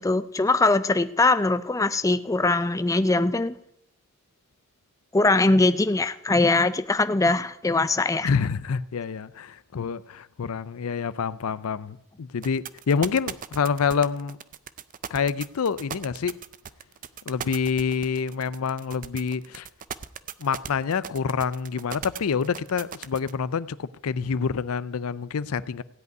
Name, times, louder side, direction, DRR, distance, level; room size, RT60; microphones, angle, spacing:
voice 1, 0.0-3.5 5.1-8.3, left 2 dB, 15° left, 0.4 m, -22 dB
voice 2, 8.2-14.4 15.1-16.4 17.3-19.7 20.4-25.8, left 6 dB, 80° left, 0.5 m, -27 dB
sound 1, 12.4-23.3, right 8 dB, 40° right, 0.5 m, -37 dB
16.0 x 5.5 x 9.2 m
head